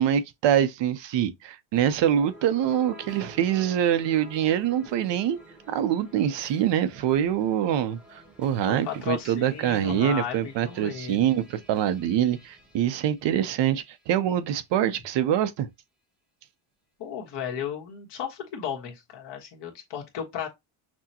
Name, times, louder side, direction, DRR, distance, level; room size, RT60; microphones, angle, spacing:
voice 1, 0.0-5.4 5.7-15.7, right 10 dB, 60° right, 0.6 m, -25 dB
sound 1, 1.7-14.1, equal, ahead, 1.0 m, -51 dB
voice 2, 8.7-11.3 17.0-20.5, left 8 dB, 55° left, 1.4 m, -35 dB
6.0 x 2.1 x 2.8 m
cardioid pair, 155°, 48 cm